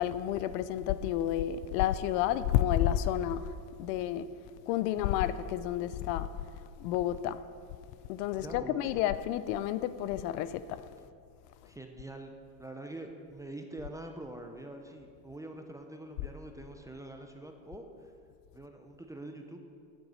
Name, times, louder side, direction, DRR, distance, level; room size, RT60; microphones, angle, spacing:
voice 1, 0.0-3.5 3.8-4.3 4.7-6.3 6.8-7.4 8.1-10.8, left 12 dB, 75° left, 0.6 m, -30 dB
voice 2, 8.4-9.0 11.6-18.1 18.5-19.6, right 1 dB, 5° right, 0.5 m, -45 dB
9.0 x 7.8 x 5.5 m
supercardioid pair, 110°, 50 cm